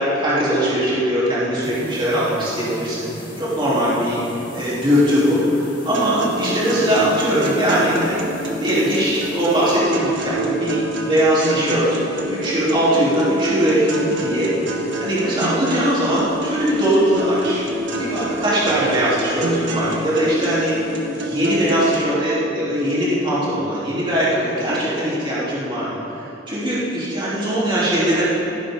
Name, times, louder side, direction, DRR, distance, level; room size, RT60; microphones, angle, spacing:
voice 1, 0.0-3.1 3.4-8.2 8.6-14.5 15.0-17.6 18.0-20.8 21.1-26.2 26.5-28.3, equal, 25° right, -9 dB, 3.5 m, -20 dB
sound 1, 1.6-9.8, equal, 25° left, 3.4 m, -36 dB
sound 2, 5.9-22.0, right 1 dB, 80° right, 1.9 m, -27 dB
16.5 x 15.0 x 3.8 m, 3.0 s
head